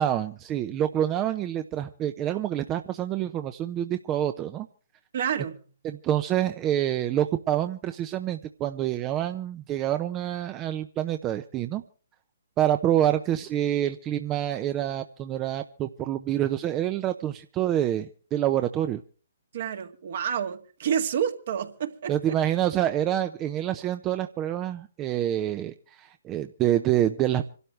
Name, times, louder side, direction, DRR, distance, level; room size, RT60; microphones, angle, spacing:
voice 1, 0.0-4.7 5.8-11.8 12.6-19.0 22.1-27.4, right 11 dB, 25° right, 0.7 m, -27 dB
voice 2, 5.1-5.6 19.5-22.4, right 8 dB, 55° right, 1.8 m, -29 dB
26.5 x 12.5 x 3.4 m
figure-of-eight pair, 135°, 0 cm